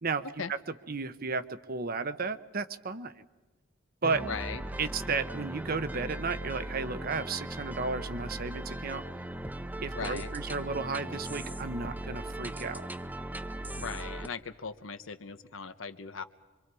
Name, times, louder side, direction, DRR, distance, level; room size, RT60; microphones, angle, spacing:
voice 1, 0.9-3.3 4.0-4.2 4.8-9.0 9.8-12.9, right 4 dB, 50° right, 11 dB, 1.0 m, -33 dB
sound 1, 4.0-14.3, right 1 dB, 10° right, 0.7 m, -38 dB
voice 2, 4.2-4.6 9.9-10.3 13.8-16.2, left 5 dB, 80° left, 10 dB, 1.1 m, -38 dB
26.0 x 24.5 x 4.8 m, 1.2 s
head